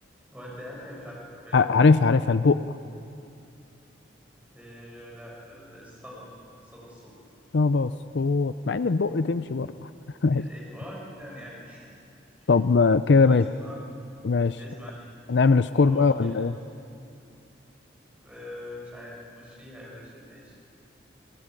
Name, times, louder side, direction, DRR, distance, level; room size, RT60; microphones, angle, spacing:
voice 1, 0.3-1.7 4.5-6.3 6.6-7.1 10.3-11.9 12.4-12.5 13.2-13.8 14.6-15.1 15.7-16.5 18.2-20.6, left 1 dB, 5° right, -4 dB, 6.3 m, -43 dB
voice 2, 1.5-2.6 7.5-9.9 10.2-10.5 12.5-13.4 14.2-14.6 15.3-16.6, left 4 dB, 65° left, 12 dB, 0.5 m, -21 dB
28.5 x 17.5 x 9.1 m, 2.6 s
head